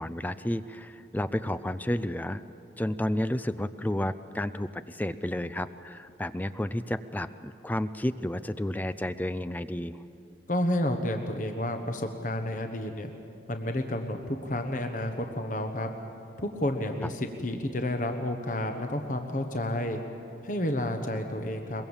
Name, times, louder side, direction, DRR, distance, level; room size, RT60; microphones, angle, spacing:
voice 1, 0.0-2.4 2.8-10.0, left 1 dB, 10° left, 13 dB, 0.4 m, -31 dB
voice 2, 10.5-13.1 13.5-15.9 16.4-20.0 20.4-21.9, left 1 dB, 45° left, 5 dB, 1.3 m, -30 dB
23.0 x 22.0 x 7.3 m, 2.7 s
head